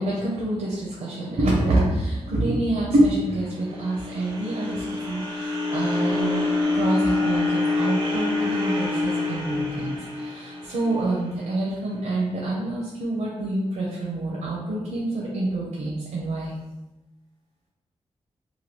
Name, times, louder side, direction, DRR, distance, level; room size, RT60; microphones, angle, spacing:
voice 1, 0.0-6.4 6.7-16.6, right 1 dB, 85° right, -5 dB, 0.7 m, -26 dB
sound 1, 3.3-11.5, left 3 dB, 45° right, 0.8 m, -26 dB
3.0 x 2.3 x 3.0 m, 1.0 s
wide cardioid pair, 160°, 12 cm